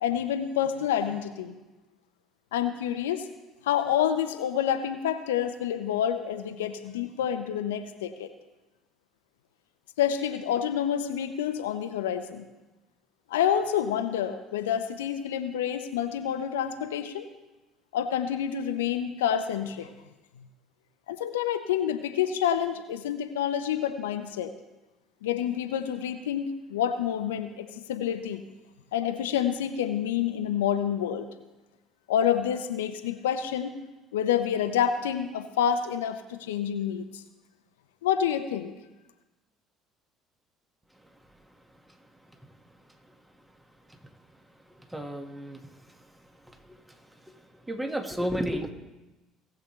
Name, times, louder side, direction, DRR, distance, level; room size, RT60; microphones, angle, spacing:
voice 1, 0.0-1.5 2.5-3.2 3.6-8.3 10.0-12.5 13.3-17.3 17.9-19.9 21.1-24.5 25.2-28.4 28.9-31.3 32.1-33.8 34.1-37.2 38.0-38.7, left 9 dB, 80° left, 9 dB, 0.7 m, -28 dB
voice 2, 44.9-45.6 47.7-48.7, equal, 10° right, 4 dB, 1.7 m, -31 dB
18.5 x 7.2 x 3.2 m, 1.1 s
hypercardioid pair, 60°, 0 cm